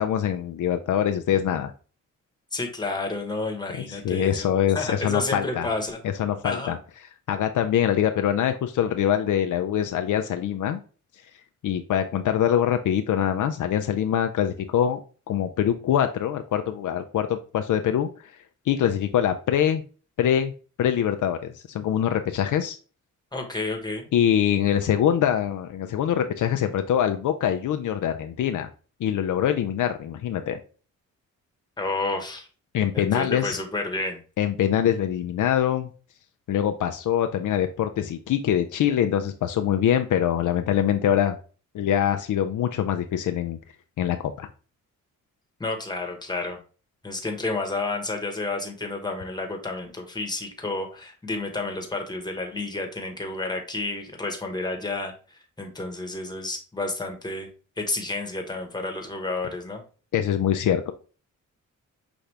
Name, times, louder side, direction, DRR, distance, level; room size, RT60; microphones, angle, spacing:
voice 1, 0.0-1.7 3.9-5.7 6.2-6.8 7.3-10.8 11.6-15.0 15.3-18.1 18.7-19.8 20.2-20.5 20.8-22.8 24.1-28.7 29.0-30.6 32.7-33.6 34.4-35.9 36.5-41.4 41.7-43.6 44.0-44.5 60.1-60.9, left 10 dB, 70° left, 7 dB, 0.5 m, -24 dB
voice 2, 2.5-4.5 4.7-6.0 6.4-6.7 23.3-24.1 31.8-32.5 32.9-34.2 45.6-46.6 47.0-57.5 57.8-59.8, left 2 dB, 15° left, 3 dB, 1.3 m, -30 dB
5.8 x 2.6 x 3.3 m, 0.37 s
cardioid pair, 75°, 32 cm